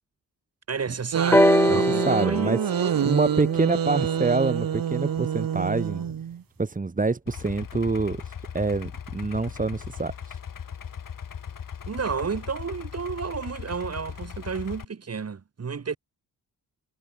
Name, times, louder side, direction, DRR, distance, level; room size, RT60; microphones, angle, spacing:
voice 1, 0.7-3.0 11.9-16.0, right 6 dB, 40° right, 5.4 m, -32 dB
sound 1, 1.1-6.4, right 9 dB, 60° right, 2.2 m, -27 dB
sound 2, 1.3-5.1 6.1-6.2, left 1 dB, 5° left, 2.7 m, -24 dB
voice 2, 1.7-6.0 6.6-10.4, right 3 dB, 20° right, 2.4 m, -27 dB
Idling, 7.3-14.8, left 8 dB, 55° left, 4.9 m, -38 dB
wide cardioid pair, 160°, 38 cm